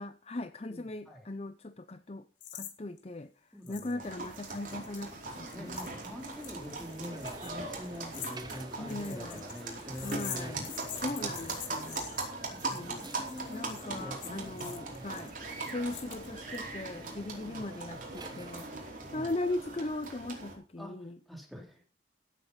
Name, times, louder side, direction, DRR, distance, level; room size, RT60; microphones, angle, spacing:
voice 1, 0.0-2.3 2.5-5.8 8.8-9.5 10.0-12.2 12.7-15.4 15.7-21.2, left 2 dB, 35° left, 11 dB, 0.6 m, -39 dB
sound 1, 2.4-2.7 3.0-3.1 3.7-3.9 4.2-16.6, left 10 dB, 90° left, 2.5 m, -46 dB
voice 2, 3.5-4.1 5.5-10.5 11.0-11.4 12.5-15.2 17.4-17.6 19.0-19.3 20.8-21.8, equal, ahead, 2 dB, 3.5 m, -45 dB
sound 2, 4.0-20.5, right 3 dB, 45° right, 4.5 m, -40 dB
sound 3, 5.2-18.5, right 1 dB, 20° right, 1.4 m, -50 dB
16.5 x 8.2 x 5.6 m, 0.37 s
head